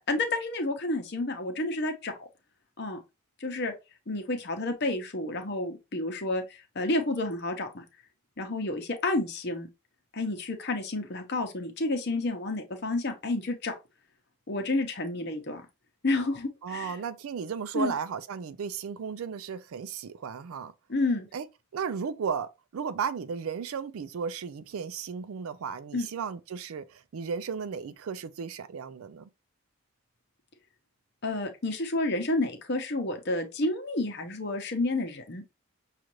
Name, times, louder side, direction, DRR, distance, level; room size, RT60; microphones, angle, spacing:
voice 1, 0.0-2.1 2.8-3.0 3.4-3.7 4.1-7.8 8.4-9.7 10.1-13.8 14.5-15.6 16.0-17.0 17.7-17.9 20.9-21.3 25.9-26.1 31.2-35.4, left 2 dB, 50° left, 0.8 m, -30 dB
voice 2, 16.6-20.7 21.3-21.5 21.7-29.3, right 6 dB, 70° right, 0.4 m, -35 dB
6.3 x 2.5 x 3.0 m
head